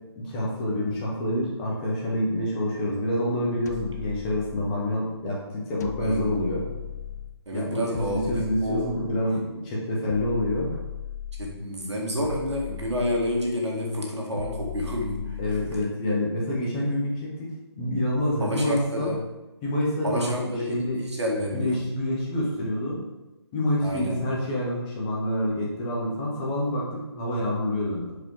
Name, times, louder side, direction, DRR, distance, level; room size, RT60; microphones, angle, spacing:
voice 1, 0.2-6.6 7.5-10.8 15.4-19.1 19.6-21.0 21.5-23.0 23.5-28.1, left 1 dB, 15° left, -4 dB, 1.0 m, -27 dB
sound 1, 3.7-5.0 5.8-7.4 7.9-9.4 10.1-11.7 12.2-13.6 14.4-16.0, left 10 dB, 40° left, 0.5 m, -37 dB
voice 2, 7.5-8.9 11.4-15.8 18.4-19.2 20.0-21.8 23.8-24.2, equal, 75° right, -1 dB, 1.9 m, -29 dB
5.3 x 4.9 x 4.8 m, 1.0 s
figure-of-eight pair, 155°, 14 cm